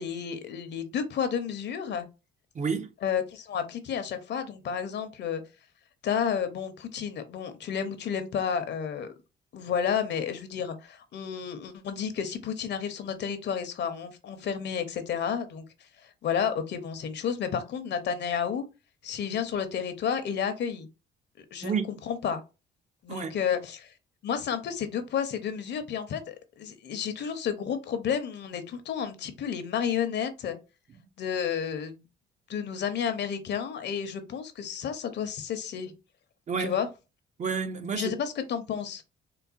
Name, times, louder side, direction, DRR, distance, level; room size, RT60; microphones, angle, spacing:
voice 1, 0.0-2.1 3.0-5.4 6.0-9.1 9.5-15.6 16.0-18.7 19.0-20.9 21.5-21.8 22.1-22.4 23.0-23.9 24.2-30.6 31.2-32.0 32.5-35.9 36.6-36.9 37.9-39.0, left 7 dB, 60° left, 0.7 m, -31 dB
voice 2, 2.5-2.9 21.6-21.9 23.1-23.4 36.5-36.8 37.4-38.2, right 5 dB, 35° right, 0.5 m, -30 dB
3.8 x 2.1 x 2.5 m
cardioid pair, 90°, 20 cm